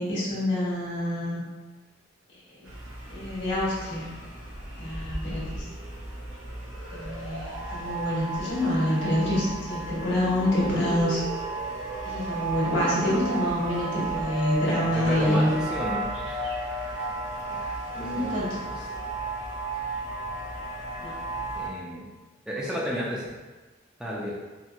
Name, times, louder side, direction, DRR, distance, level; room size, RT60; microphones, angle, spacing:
voice 1, 0.0-1.4 2.6-2.7 3.1-4.0 4.8-5.6 6.9-11.2 12.0-15.5 17.9-18.5 21.0-21.1, left 1 dB, 60° left, -8 dB, 1.3 m, -27 dB
sound 1, 2.6-21.7, right 2 dB, 90° right, 0.8 m, -34 dB
voice 2, 14.6-16.5 17.5-19.0 21.5-22.1 22.5-23.3 24.0-24.4, equal, 5° right, -7 dB, 0.4 m, -33 dB
4.3 x 2.0 x 2.4 m, 1.2 s
head